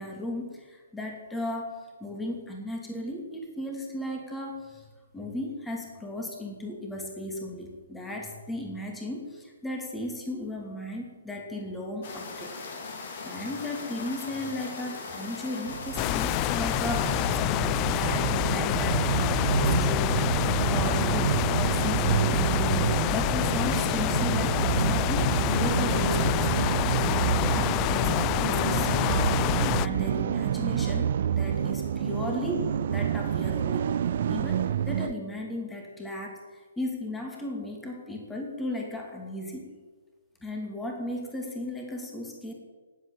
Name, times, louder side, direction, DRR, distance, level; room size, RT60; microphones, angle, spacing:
voice 1, 0.0-4.8 5.1-12.5 12.9-26.5 27.0-29.5 29.8-33.8 34.3-39.7 40.4-42.5, left 1 dB, 5° left, 1 dB, 2.6 m, -35 dB
sound 1, 12.0-17.4, left 4 dB, 45° left, 3.2 m, -39 dB
sound 2, 15.7-35.1, right 9 dB, 50° right, 0.7 m, -28 dB
sound 3, 16.0-29.9, left 17 dB, 25° left, 0.4 m, -27 dB
19.0 x 8.4 x 9.0 m, 1.4 s
figure-of-eight pair, 130°, 0 cm